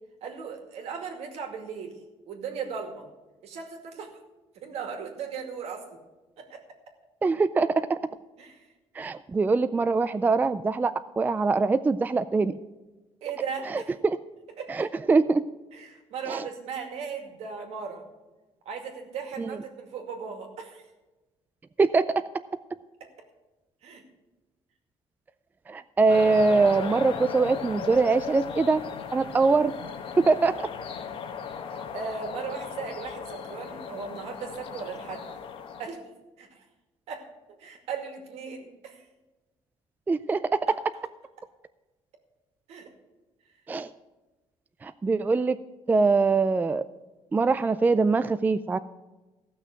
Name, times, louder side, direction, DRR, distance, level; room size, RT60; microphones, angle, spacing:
voice 1, 0.2-2.0 2.3-3.0 3.4-4.1 4.5-5.9 6.4-6.6 8.4-8.7 13.2-13.9 14.6-14.9 15.7-18.0 18.7-20.8 23.8-24.0 31.9-35.3 35.8-36.0 36.4-36.6 37.1-37.2 37.6-39.0 42.7-42.9, right 6 dB, 70° right, 3 dB, 2.3 m, -37 dB
voice 2, 7.2-8.0 9.0-12.5 14.0-14.2 14.7-15.4 16.3-16.4 19.4-19.6 21.8-22.0 25.7-28.8 29.1-29.7 30.2-30.5 40.1-40.6 43.7-43.9 44.8-45.6 45.9-46.9 47.3-48.8, right 4 dB, 15° right, 12 dB, 0.3 m, -23 dB
sound 1, 26.1-35.9, left 6 dB, 55° left, 1.1 m, -37 dB
15.0 x 6.2 x 6.5 m, 1.1 s
cardioid pair, 125°, 11 cm